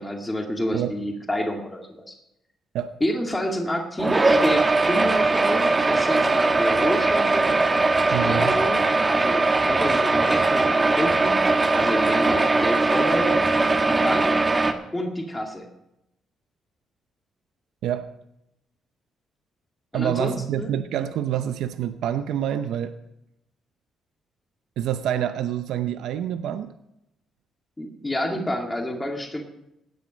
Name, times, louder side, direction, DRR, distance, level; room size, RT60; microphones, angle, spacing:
voice 1, 0.0-2.2 3.0-7.5 8.2-11.4 11.7-13.4 13.9-14.5 14.9-15.7 19.9-20.8 27.8-29.4, equal, 15° left, 2 dB, 2.2 m, -29 dB
sound 1, 4.0-14.7, right 3 dB, 20° right, 1.4 m, -20 dB
voice 2, 8.1-8.6 17.8-18.1 19.9-22.9 24.8-26.7, right 10 dB, 80° right, 9 dB, 0.7 m, -27 dB
16.5 x 9.6 x 5.3 m, 0.85 s
cardioid pair, 90°, 0 cm